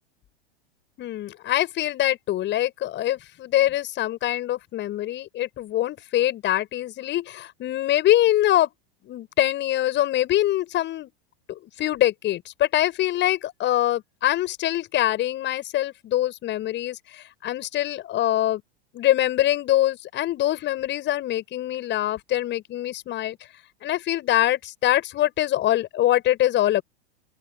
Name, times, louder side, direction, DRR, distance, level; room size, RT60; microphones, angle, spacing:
voice 1, 1.0-8.7 9.0-11.1 11.5-18.6 18.9-23.4 23.8-26.8, left 13 dB, 35° left, 7.5 m, -24 dB
open air
figure-of-eight pair, 90°, 32 cm